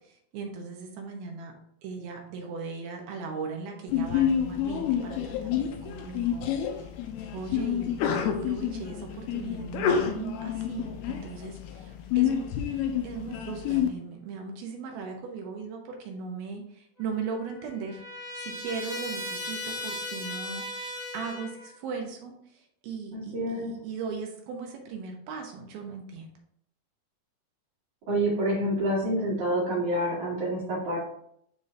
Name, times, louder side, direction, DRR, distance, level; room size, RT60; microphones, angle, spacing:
voice 1, 0.3-1.5 1.8-6.5 7.3-12.5 13.0-18.0 18.4-26.3, right 5 dB, 75° right, 2 dB, 2.8 m, -38 dB
Sneeze, 3.9-13.9, left 9 dB, 85° left, 2.6 m, -29 dB
Trumpet, 17.0-21.7, left 1 dB, 20° left, 1.5 m, -37 dB
voice 2, 23.1-23.7 28.1-31.0, right 1 dB, 55° right, -6 dB, 3.5 m, -27 dB
10.5 x 3.7 x 2.7 m, 0.70 s
omnidirectional pair, 4.6 m